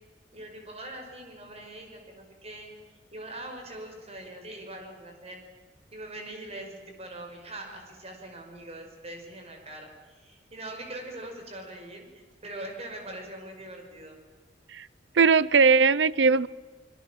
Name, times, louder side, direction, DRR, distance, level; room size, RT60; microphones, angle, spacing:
voice 1, 0.3-2.7 3.1-5.4 5.9-14.2, right 1 dB, 35° right, 3 dB, 5.7 m, -42 dB
voice 2, 15.1-16.5, right 5 dB, 85° right, 20 dB, 0.7 m, -19 dB
26.5 x 22.5 x 7.6 m, 1.3 s
head